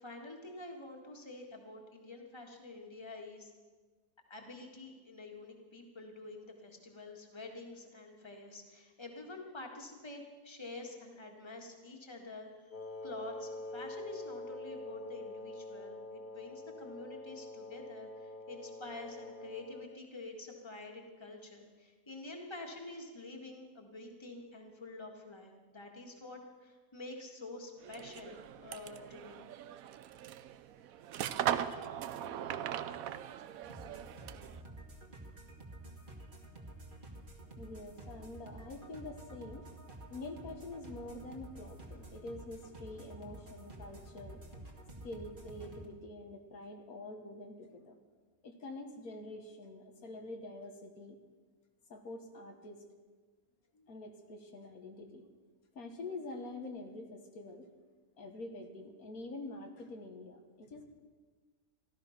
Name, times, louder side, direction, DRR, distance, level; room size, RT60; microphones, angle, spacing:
voice 1, 0.0-3.5 4.3-29.4, left 2 dB, 20° left, 1 dB, 1.8 m, -48 dB
Wind instrument woodwind instrument, 12.7-20.0, left 1 dB, 50° left, 0.6 m, -45 dB
sound 1, 27.8-34.6, right 10 dB, 75° right, 1.0 m, -39 dB
sound 2, 33.6-45.9, right 1 dB, 35° right, 1.9 m, -50 dB
voice 2, 37.6-39.7 40.1-44.4 45.0-48.0 48.4-51.2 51.9-52.8 53.7-55.2 55.7-57.7 58.2-60.8, left 2 dB, 80° left, 4 dB, 1.8 m, -46 dB
14.5 x 13.0 x 5.8 m, 1.4 s
omnidirectional pair, 1.5 m